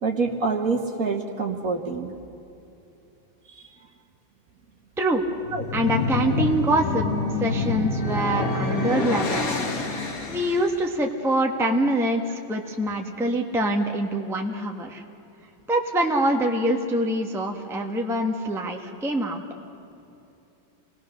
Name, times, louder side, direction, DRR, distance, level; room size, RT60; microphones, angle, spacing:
voice 1, 0.0-2.1 3.5-3.6 5.5-5.7, right 4 dB, 45° right, 3 dB, 1.8 m, -26 dB
sound 1, 5.4-10.8, left 3 dB, 45° left, 2.0 m, -27 dB
voice 2, 5.7-7.0 7.4-9.5 10.3-15.0 15.7-19.4, right 1 dB, ahead, 2 dB, 1.3 m, -24 dB
28.0 x 20.0 x 6.6 m, 2.8 s
omnidirectional pair, 2.2 m